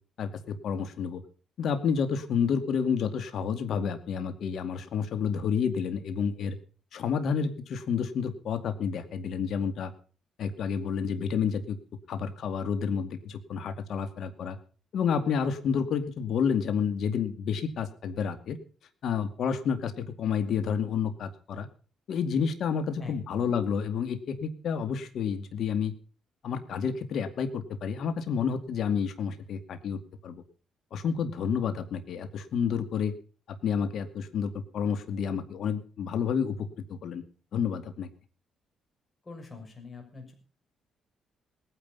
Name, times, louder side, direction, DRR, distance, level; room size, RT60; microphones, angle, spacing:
voice 1, 0.2-1.2 1.6-6.6 6.9-9.9 10.4-11.8 12.1-14.6 14.9-18.6 19.0-21.7 22.1-25.9 26.4-30.4 30.9-33.1 33.5-37.2 37.5-38.1, left 6 dB, 65° left, 10 dB, 2.3 m, -30 dB
voice 2, 23.0-23.5 39.2-40.3, left 4 dB, 30° left, 3 dB, 6.2 m, -44 dB
20.0 x 10.0 x 5.6 m, 0.38 s
cardioid pair, 90°, 0 cm